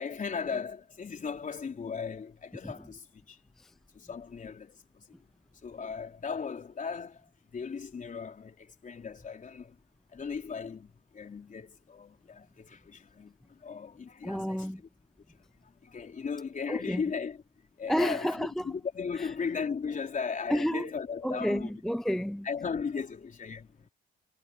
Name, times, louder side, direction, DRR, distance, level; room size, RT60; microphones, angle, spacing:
voice 1, 0.0-3.4 3.9-5.1 5.6-9.8 10.1-14.9 15.3-17.4 17.8-21.7 22.4-23.9, left 5 dB, 40° left, 4.0 m, -37 dB
voice 2, 14.2-14.8 16.7-17.0 17.9-18.6 19.2-19.3 20.5-20.9 21.2-22.5, equal, ahead, 0.4 m, -30 dB
cardioid pair, 90°, 20 cm